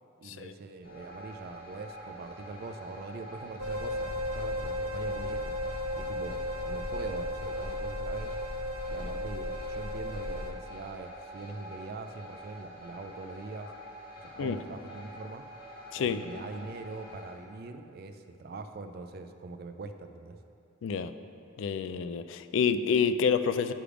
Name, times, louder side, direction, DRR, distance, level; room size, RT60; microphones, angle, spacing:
voice 1, 0.2-5.5 6.0-6.4 6.6-8.3 8.9-13.7 14.2-15.4 16.0-20.4, right 3 dB, 50° right, 8 dB, 0.4 m, -43 dB
sound 1, 0.8-17.3, equal, 45° left, 1.7 m, -47 dB
sound 2, 3.6-10.5, left 1 dB, 85° right, 0.6 m, -34 dB
voice 2, 20.8-21.1 21.6-23.7, left 6 dB, 65° left, 11 dB, 0.3 m, -28 dB
10.0 x 3.4 x 4.9 m, 2.6 s
head